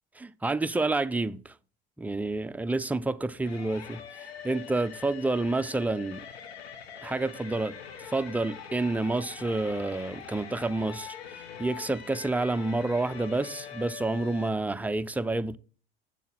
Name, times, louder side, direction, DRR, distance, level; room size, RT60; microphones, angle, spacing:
voice 1, 0.2-1.5 2.0-6.3 7.0-15.6, right 2 dB, 5° right, 0.5 m, -29 dB
sound 1, 3.4-14.5, left 8 dB, 90° left, 1.3 m, -43 dB
8.5 x 7.0 x 4.3 m
hypercardioid pair, 70°, 30 cm